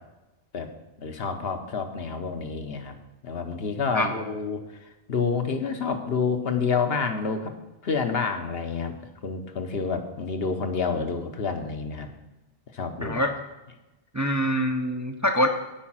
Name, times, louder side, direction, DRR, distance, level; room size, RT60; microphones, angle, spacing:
voice 1, 1.0-2.9 3.2-4.6 5.1-7.5 7.8-8.9 9.2-12.1 12.7-13.2, left 5 dB, 70° left, 5 dB, 1.2 m, -28 dB
voice 2, 13.0-13.3 14.1-15.5, equal, 20° right, 4 dB, 0.5 m, -24 dB
8.8 x 5.1 x 7.4 m, 1.0 s
omnidirectional pair, 1.1 m